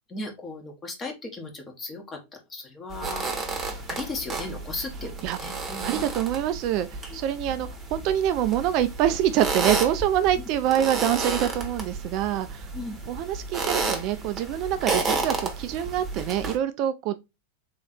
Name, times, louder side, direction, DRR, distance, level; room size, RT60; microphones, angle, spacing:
voice 1, 0.1-3.5 3.9-6.0 7.1-7.2 12.7-12.9, left 2 dB, 20° left, 1.3 m, -36 dB
sound 1, 2.9-16.6, right 3 dB, 20° right, 1.2 m, -32 dB
voice 2, 5.2-12.7 13.1-17.1, right 11 dB, 40° right, 0.3 m, -26 dB
3.8 x 3.1 x 4.1 m
figure-of-eight pair, 90°, 0 cm